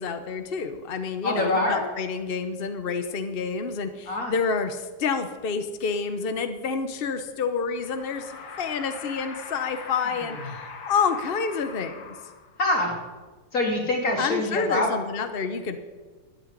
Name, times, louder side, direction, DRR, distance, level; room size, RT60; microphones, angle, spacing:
voice 1, 0.0-12.2 14.2-15.8, left 5 dB, 65° left, 8 dB, 0.5 m, -28 dB
voice 2, 1.2-1.8 4.1-4.3 12.6-12.9 13.5-14.9, left 2 dB, 40° left, 0 dB, 3.2 m, -24 dB
sound 1, 7.7-12.8, left 5 dB, 80° left, 2.3 m, -41 dB
13.0 x 8.5 x 9.6 m, 1.3 s
omnidirectional pair, 2.4 m